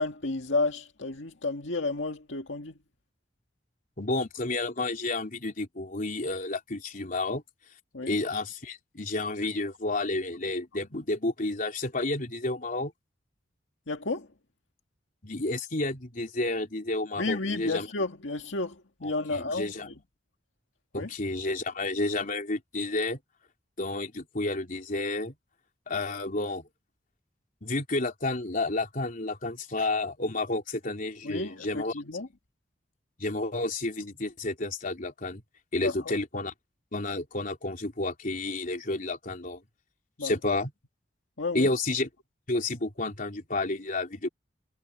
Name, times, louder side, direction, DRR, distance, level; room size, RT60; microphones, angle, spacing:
voice 1, 0.0-2.7 7.9-8.2 13.9-14.3 17.2-18.8 19.0-19.7 20.9-21.1 31.2-32.3 35.8-35.9 40.2-40.3 41.4-41.7, left 3 dB, 80° left, 1.9 m, -31 dB
voice 2, 4.0-7.4 8.0-12.9 15.2-17.9 19.0-19.9 20.9-23.2 23.8-25.3 25.9-26.6 27.6-31.9 33.2-35.4 35.7-36.5 36.9-39.6 40.2-40.7 41.5-42.1 42.5-44.3, left 2 dB, 45° left, 3.6 m, -31 dB
head